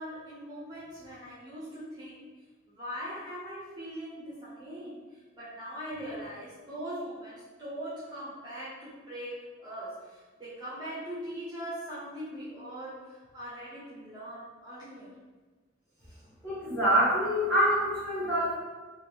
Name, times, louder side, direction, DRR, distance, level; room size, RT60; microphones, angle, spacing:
voice 1, 0.0-2.3 2.7-15.2 16.1-16.2, equal, 20° right, -10 dB, 0.7 m, -41 dB
voice 2, 16.4-18.5, equal, 5° left, -11 dB, 1.5 m, -25 dB
2.8 x 2.4 x 3.5 m, 1.3 s
head